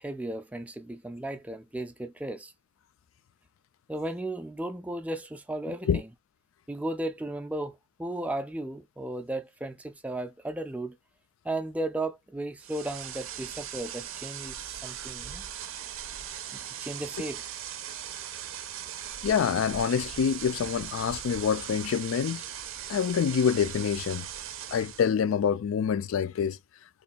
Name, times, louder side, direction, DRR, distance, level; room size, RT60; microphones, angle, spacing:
voice 1, 0.0-2.5 3.9-6.1 6.7-11.0 11.4-15.5 16.5-17.4, right 1 dB, 5° right, 0.3 m, -35 dB
sound 1, 12.6-25.1, right 10 dB, 90° right, 0.5 m, -39 dB
voice 2, 19.2-22.4 22.9-24.3 24.7-26.6, left 7 dB, 80° left, 0.3 m, -26 dB
3.0 x 2.3 x 4.1 m
head